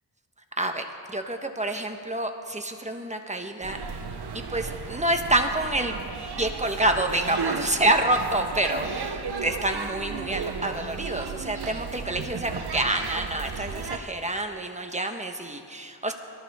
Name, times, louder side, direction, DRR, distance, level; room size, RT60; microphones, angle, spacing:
voice 1, 0.6-3.8 4.3-6.0 6.4-16.1, right 1 dB, 20° right, 4 dB, 1.3 m, -27 dB
sound 1, 3.6-14.0, right 5 dB, 85° right, 1.1 m, -34 dB
24.0 x 14.0 x 3.7 m, 2.4 s
wide cardioid pair, 95°, 38 cm